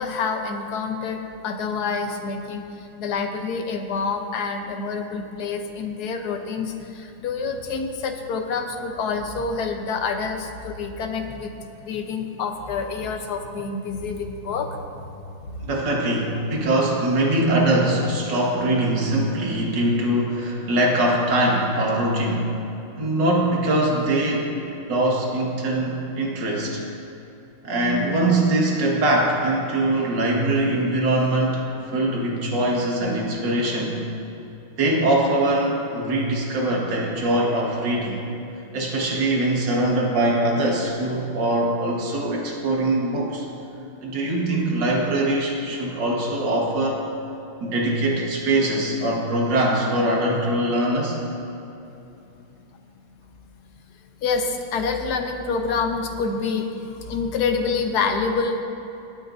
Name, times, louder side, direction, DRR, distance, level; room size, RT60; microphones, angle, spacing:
voice 1, 0.0-2.6 3.0-11.5 11.8-15.1 15.4-15.6 54.2-58.6, left 4 dB, 55° left, 4 dB, 1.3 m, -27 dB
voice 2, 15.6-22.5 23.0-24.5 24.9-26.8 27.6-31.6 31.9-34.0 34.8-38.2 38.7-43.5 44.0-47.0 47.6-51.2, right 1 dB, 60° right, -2 dB, 2.4 m, -22 dB
19.0 x 12.0 x 2.7 m, 2.9 s
omnidirectional pair, 2.3 m